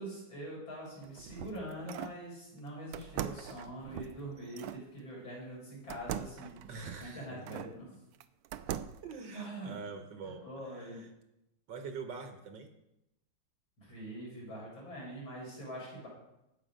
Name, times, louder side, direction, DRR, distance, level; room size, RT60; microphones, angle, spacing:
voice 1, 0.0-6.5 7.0-7.9 9.3-9.8 10.2-11.0 13.8-16.1, right 1 dB, 65° left, -4 dB, 5.8 m, -44 dB
sound 1, 0.9-2.2 2.9-4.8 5.9-7.7 8.2-9.1, right 10 dB, 80° right, 1.4 m, -41 dB
voice 2, 6.7-7.6 9.0-11.1 11.7-12.7, right 5 dB, 65° right, 6 dB, 1.6 m, -45 dB
16.5 x 6.6 x 5.1 m, 0.89 s
omnidirectional pair, 2.3 m